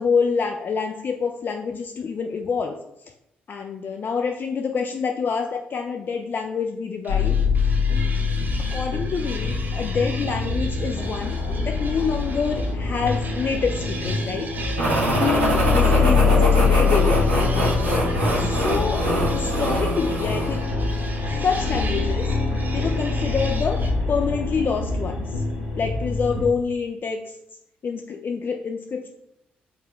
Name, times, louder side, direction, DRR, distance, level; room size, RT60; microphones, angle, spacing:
voice 1, 0.0-2.8 3.5-7.4 8.7-14.5 15.2-17.3 18.4-20.7 21.4-22.3 22.7-25.4 25.7-27.4 27.8-29.1, left 5 dB, 40° left, 4 dB, 0.4 m, -27 dB
sound 1, 7.0-12.7 13.1-23.9, right 3 dB, 35° right, 0.7 m, -39 dB
sound 2, 7.1-26.5, left 4 dB, 75° left, 0.9 m, -24 dB
sound 3, 14.8-20.6, right 1 dB, 85° right, 0.9 m, -24 dB
4.9 x 2.2 x 4.7 m, 0.80 s
figure-of-eight pair, 40°, 5 cm